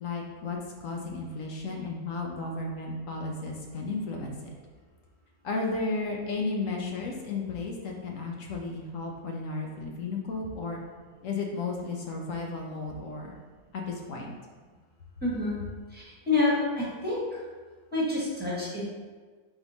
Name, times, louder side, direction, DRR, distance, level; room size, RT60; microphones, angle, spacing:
voice 1, 0.0-4.5 5.4-10.8 11.2-13.3 13.7-14.3, left 3 dB, 65° left, 0 dB, 0.9 m, -34 dB
voice 2, 15.2-15.6 15.9-17.4 17.9-18.8, left 2 dB, 5° right, -8 dB, 1.2 m, -28 dB
4.1 x 2.9 x 3.9 m, 1.4 s
omnidirectional pair, 1.6 m